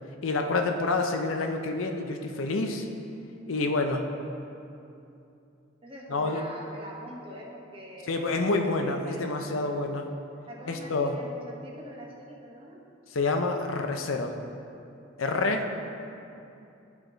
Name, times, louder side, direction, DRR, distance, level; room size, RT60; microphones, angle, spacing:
voice 1, 0.2-2.9 3.5-4.0 6.1-6.4 8.1-10.1 10.7-11.1 13.1-14.3 15.2-15.7, left 3 dB, 85° left, 4 dB, 0.6 m, -28 dB
voice 2, 5.8-9.7 10.5-12.8, equal, 30° right, -3 dB, 1.2 m, -44 dB
12.0 x 4.8 x 3.9 m, 2.7 s
head